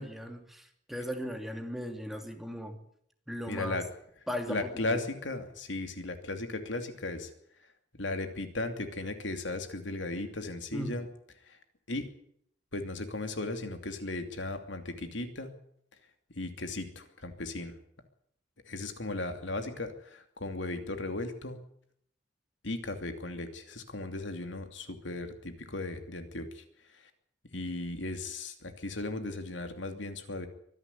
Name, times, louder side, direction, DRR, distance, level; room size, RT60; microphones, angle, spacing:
voice 1, 0.0-2.8 3.3-3.8 4.3-5.0 10.7-11.0, equal, ahead, 4 dB, 2.7 m, -37 dB
voice 2, 3.5-3.8 4.5-7.3 8.0-11.1 11.5-11.6 11.9-12.1 12.7-15.5 16.3-17.7 18.7-21.6 22.6-26.6 27.5-30.5, left 2 dB, 80° left, 7 dB, 2.7 m, -36 dB
24.0 x 11.0 x 9.7 m, 0.69 s
head